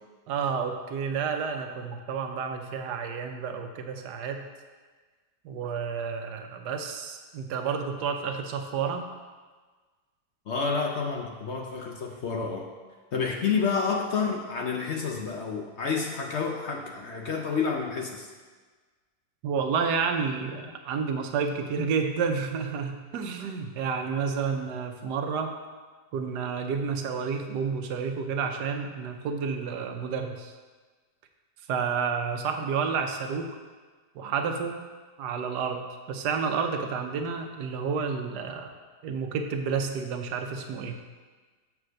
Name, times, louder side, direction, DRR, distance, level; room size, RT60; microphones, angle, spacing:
voice 1, 0.3-4.5 5.4-9.1 19.4-25.5 26.1-30.5 31.7-33.5 34.1-34.9 35.2-38.7 39.0-41.0, right 6 dB, 90° right, 5 dB, 1.3 m, -30 dB
voice 2, 10.5-12.7 13.1-18.3, left 5 dB, 60° left, 2 dB, 0.8 m, -29 dB
6.8 x 4.8 x 6.4 m, 1.4 s
omnidirectional pair, 1.7 m